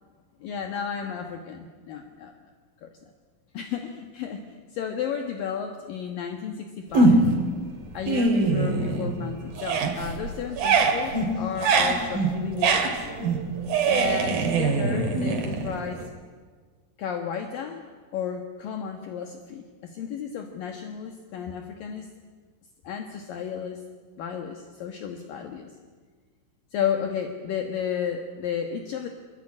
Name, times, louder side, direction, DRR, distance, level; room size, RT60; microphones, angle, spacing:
voice 1, 0.4-2.3 2.8-2.9 3.5-7.3 7.9-13.0 13.9-16.1 17.0-17.9 18.1-22.1 22.8-23.8 24.2-25.7 26.7-29.1, left 8 dB, 65° left, 4 dB, 2.3 m, -33 dB
sound 1, 6.9-7.5 7.9-9.2 9.5-16.0, right 3 dB, 50° right, 3.8 m, -23 dB
26.0 x 23.5 x 9.8 m, 1.5 s
omnidirectional pair, 5.9 m